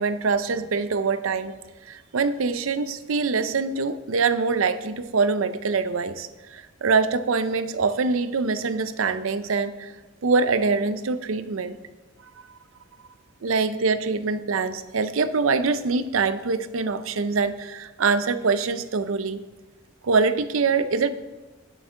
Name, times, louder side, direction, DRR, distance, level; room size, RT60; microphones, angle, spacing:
voice 1, 0.0-1.5 1.9-9.9 10.2-11.8 12.4-12.6 13.4-19.4 20.0-21.1, right 4 dB, 80° right, 13 dB, 0.6 m, -24 dB
10.5 x 8.0 x 3.7 m, 1.2 s
head